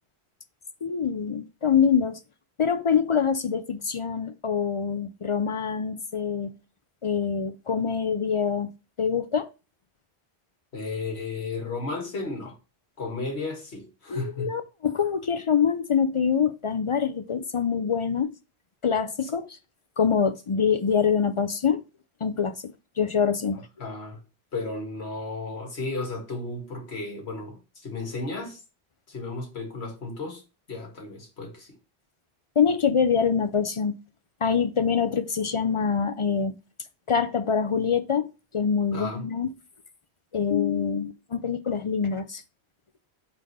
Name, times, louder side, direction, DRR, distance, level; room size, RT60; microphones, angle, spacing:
voice 1, 0.8-2.2 2.6-6.5 7.0-8.7 9.0-9.5 14.1-18.3 18.8-19.6 20.0-21.8 22.2-23.7 32.6-34.0 34.4-36.5 37.1-38.3 38.5-39.5 40.3-42.4, left 6 dB, 50° left, 0.3 m, -25 dB
voice 2, 10.7-12.6 13.0-14.5 23.8-24.2 24.5-28.6 29.1-30.4 30.7-31.7 38.9-39.2, left 3 dB, 75° left, 2.0 m, -34 dB
4.8 x 4.1 x 5.5 m
omnidirectional pair, 1.1 m